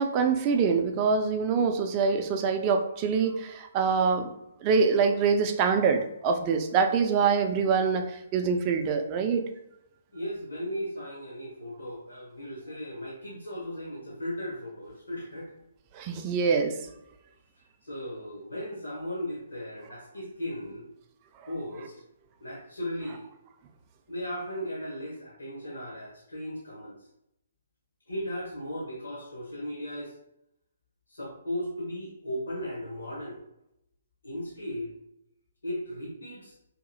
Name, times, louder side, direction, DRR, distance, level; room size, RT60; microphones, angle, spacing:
voice 1, 0.0-4.3 4.6-8.1 8.3-9.4 15.9-16.8, right 5 dB, 30° right, 5 dB, 0.3 m, -25 dB
voice 2, 10.1-15.5 16.2-16.3 17.8-20.9 21.5-21.9 22.4-23.3 24.1-26.9 28.1-30.1 31.1-33.4 34.2-34.9 35.6-36.5, equal, 75° left, -5 dB, 0.8 m, -36 dB
2.8 x 2.6 x 2.6 m, 0.81 s
figure-of-eight pair, 130°, 0 cm